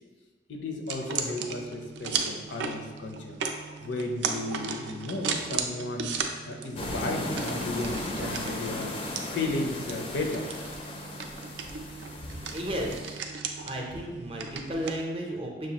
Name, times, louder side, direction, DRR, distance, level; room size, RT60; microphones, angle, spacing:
voice 1, 0.5-3.4 3.8-6.1 6.5-8.9 9.3-10.5, left 2 dB, 85° left, 3 dB, 0.6 m, -34 dB
sound 1, 0.9-15.0, right 5 dB, 80° right, 0.4 m, -36 dB
sound 2, 6.8-13.0, left 1 dB, 30° left, 0.4 m, -36 dB
voice 2, 12.5-13.3 13.6-15.7, right 1 dB, 30° right, 0 dB, 0.5 m, -33 dB
6.1 x 2.3 x 2.8 m, 1.3 s
head